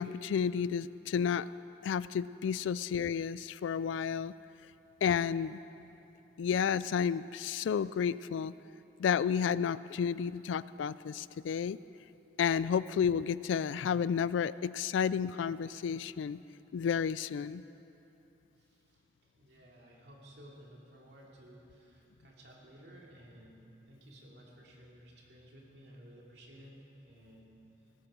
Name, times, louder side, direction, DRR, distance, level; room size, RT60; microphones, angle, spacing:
voice 1, 0.0-1.5 1.8-4.3 5.0-5.6 6.4-8.5 9.0-11.8 12.4-16.4 16.7-17.6, left 7 dB, 85° left, 17 dB, 0.3 m, -31 dB
voice 2, 18.6-26.8 27.0-27.5, equal, 60° right, -2 dB, 2.7 m, -55 dB
19.5 x 13.0 x 5.1 m, 2.9 s
head